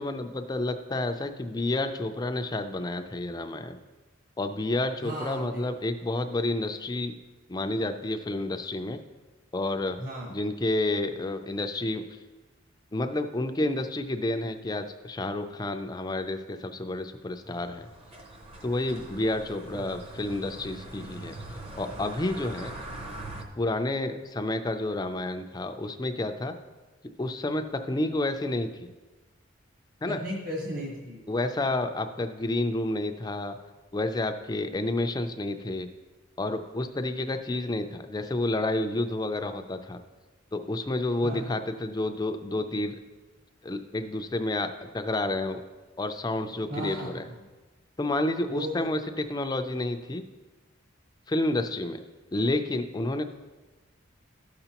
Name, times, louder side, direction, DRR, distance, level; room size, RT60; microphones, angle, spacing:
voice 1, 0.0-3.8 4.4-7.1 7.5-9.0 9.5-10.0 10.3-12.0 12.9-17.9 18.6-21.4 21.8-22.7 23.6-26.5 27.2-28.9 30.0-30.2 31.3-33.6 33.9-35.9 36.4-40.0 40.5-43.0 43.6-45.6 46.0-47.3 48.0-50.2 51.3-52.0 52.3-53.2, left 2 dB, 20° left, 7 dB, 0.4 m, -30 dB
voice 2, 5.0-5.6 10.0-10.3 19.6-20.0 30.1-31.2 41.2-41.6 46.7-47.4 48.5-48.9, equal, 45° right, -3 dB, 1.4 m, -35 dB
sound 1, 17.4-23.4, right 1 dB, 30° right, 0.8 m, -42 dB
12.5 x 6.8 x 2.9 m, 1.2 s
head